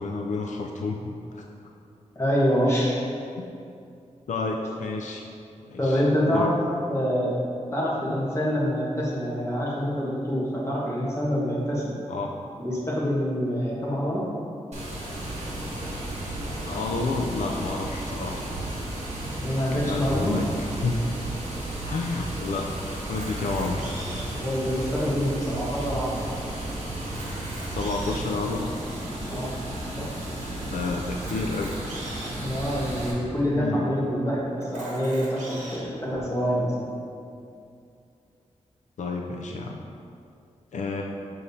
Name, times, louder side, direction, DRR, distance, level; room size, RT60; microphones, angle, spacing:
voice 1, 0.0-1.4 3.4-3.5 4.3-5.2 5.6-6.0 6.3-6.5 12.1-12.3 16.6-18.5 19.6-20.5 20.8-21.0 21.9-22.8 23.1-23.8 27.7-28.7 30.7-31.7 33.5-33.9 39.0-39.8 40.7-41.0, left 3 dB, 75° left, 1 dB, 0.4 m, -30 dB
voice 2, 2.1-3.0 5.8-6.6 6.9-7.4 7.7-11.9 12.6-14.3 19.4-20.4 24.4-26.2 29.3-29.5 30.0-30.1 32.4-36.7, equal, 20° left, -6 dB, 1.4 m, -26 dB
Water, 14.7-33.1, right 1 dB, 60° right, 1.4 m, -33 dB
Camera, 23.0-24.4 25.1-25.2 25.4-25.5 26.1-26.2 27.0-28.3 29.0-29.1 31.1-32.3 33.1-33.2 33.4-33.5 34.6-35.8, right 1 dB, 75° right, 1.4 m, -41 dB
6.6 x 6.2 x 2.8 m, 2.5 s
wide cardioid pair, 125°, 13 cm